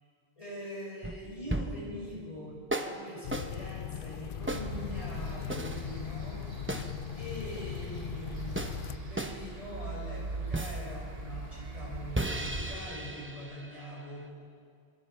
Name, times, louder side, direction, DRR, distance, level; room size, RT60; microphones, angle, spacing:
voice 1, 0.4-6.8 7.1-14.3, left 1 dB, 35° left, -5 dB, 6.0 m, -43 dB
sound 1, 1.0-1.9 2.7-3.0 3.3-3.5 4.5-4.7 5.5-5.9 6.7-6.9 8.6-8.8 9.2-9.4 10.5-10.9 12.2-14.3, right 1 dB, 10° right, 0.9 m, -35 dB
sound 2, 3.2-9.0, left 9 dB, 60° left, 0.8 m, -39 dB
sound 3, 4.4-12.8, right 3 dB, 70° right, 2.0 m, -41 dB
26.0 x 21.5 x 4.6 m, 2.3 s
omnidirectional pair, 1.1 m